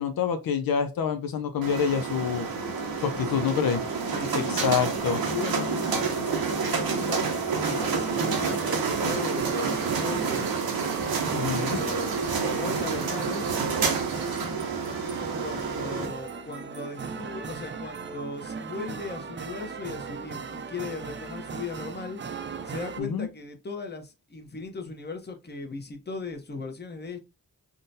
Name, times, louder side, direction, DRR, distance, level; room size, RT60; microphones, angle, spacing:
voice 1, 0.0-2.5 3.0-3.8 4.3-5.2 11.3-11.8 23.0-23.3, left 7 dB, 80° left, 0.5 m, -27 dB
sound 1, 1.6-16.1, right 5 dB, 90° right, 0.7 m, -28 dB
voice 2, 3.0-3.7 4.1-4.6 5.3-7.2 7.5-10.6 11.5-13.5 15.1-22.2 22.6-27.2, left 4 dB, 30° left, 0.7 m, -38 dB
sound 2, 7.7-23.0, right 5 dB, 35° right, 0.4 m, -38 dB
3.7 x 2.1 x 2.6 m
cardioid pair, 50°, 35 cm